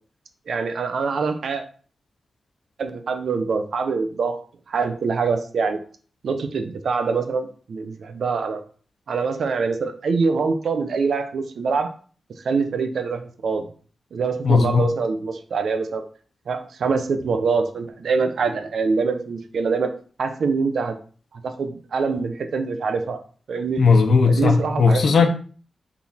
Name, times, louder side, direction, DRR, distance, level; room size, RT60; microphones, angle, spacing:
voice 1, 0.5-1.6 2.8-4.4 4.7-5.8 6.2-8.6 9.1-11.9 12.4-13.7 14.1-16.0 16.5-19.9 20.2-21.0 21.4-23.2 23.5-23.8 24.2-25.3, right 4 dB, 75° right, 7 dB, 0.9 m, -24 dB
voice 2, 14.4-14.8 23.8-25.3, left 5 dB, 65° left, 6 dB, 0.9 m, -16 dB
5.9 x 4.1 x 4.3 m, 0.42 s
wide cardioid pair, 155°, 0 cm